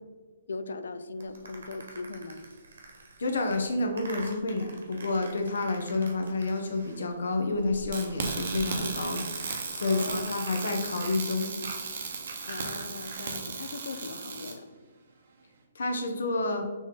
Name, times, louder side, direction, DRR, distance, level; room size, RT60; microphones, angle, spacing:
voice 1, 0.5-2.4 9.9-10.3 12.4-14.7, left 3 dB, 85° left, 11 dB, 0.4 m, -39 dB
sound 1, 1.2-7.2 7.5-13.4, right 3 dB, 65° right, 1.0 m, -45 dB
voice 2, 3.2-9.2 9.7-11.5 15.7-16.7, left 2 dB, 70° left, 4 dB, 0.8 m, -29 dB
sound 2, 7.9-14.5, right 4 dB, 40° right, 0.6 m, -36 dB
4.2 x 3.0 x 3.6 m, 1.4 s
hypercardioid pair, 175°, 0 cm